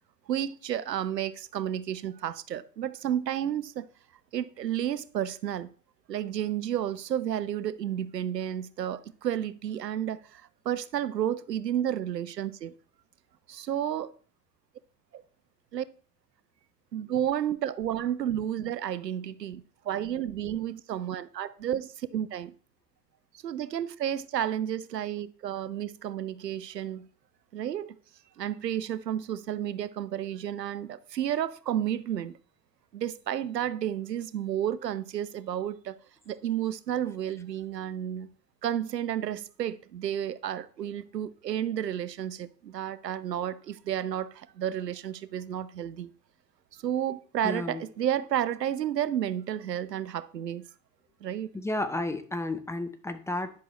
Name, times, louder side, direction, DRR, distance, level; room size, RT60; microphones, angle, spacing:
voice 1, 0.3-3.9 4.3-5.7 6.1-12.7 13.5-14.1 15.1-15.2 15.7-15.8 16.9-22.5 23.4-27.0 27.5-28.0 28.4-32.4 32.9-36.0 36.3-38.3 38.6-46.1 46.7-50.7 51.2-51.5, right 10 dB, 85° right, 0.6 m, -31 dB
voice 2, 47.4-47.8 51.5-53.5, left 2 dB, 5° left, 0.7 m, -32 dB
10.5 x 6.1 x 3.1 m
figure-of-eight pair, 85°, 48 cm